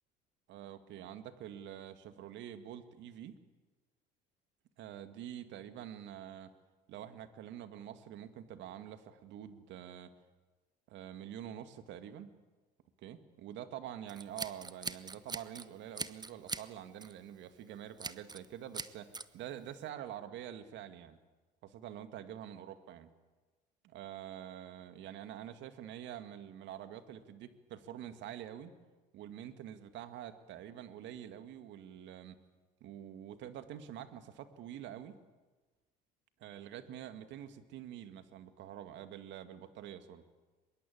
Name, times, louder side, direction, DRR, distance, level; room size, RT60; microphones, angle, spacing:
voice 1, 0.5-3.3 4.8-6.5 6.9-10.1 10.9-12.3 13.0-21.2 21.6-23.1 23.8-28.7 29.1-32.4 32.8-35.2 36.4-40.2, right 10 dB, 60° right, 10 dB, 2.2 m, -46 dB
Scissors, 14.1-15.7 16.0-16.7 17.0-17.2 18.0-18.5 18.7-19.3, right 4 dB, 20° right, 1.2 m, -41 dB
24.5 x 22.0 x 8.7 m, 1.3 s
hypercardioid pair, 75°, 21 cm